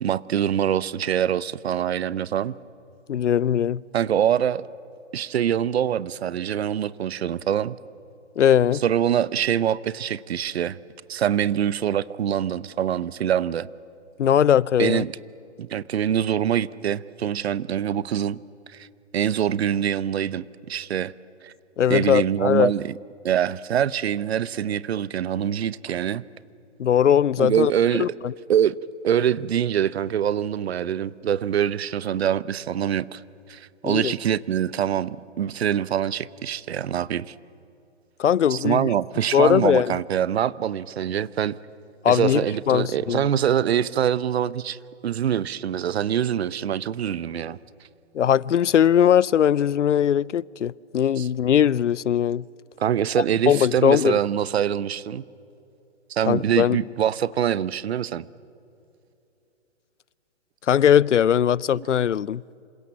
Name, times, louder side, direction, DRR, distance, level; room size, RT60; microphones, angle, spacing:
voice 1, 0.0-2.5 3.9-4.7 5.1-7.8 8.8-10.8 11.1-13.7 14.8-15.1 15.6-18.4 18.7-18.9 19.1-21.1 21.4-21.5 21.9-22.9 23.2-26.2 27.4-28.1 28.5-28.8 29.0-33.2 33.5-37.3 38.5-41.6 42.1-47.6 51.2-51.3 52.8-55.2 56.1-58.3 61.7-61.9, right 9 dB, 60° right, 0.8 m, -24 dB
voice 2, 3.1-3.8 8.4-8.8 14.2-15.0 21.8-22.7 26.8-27.7 28.0-28.1 33.8-34.1 38.2-38.9 39.3-39.9 42.0-42.4 42.7-43.2 48.1-52.4 53.5-54.2 56.3-56.8 60.7-62.4, left 9 dB, 90° left, 0.6 m, -20 dB
27.0 x 26.0 x 7.3 m
hypercardioid pair, 135°, 35 cm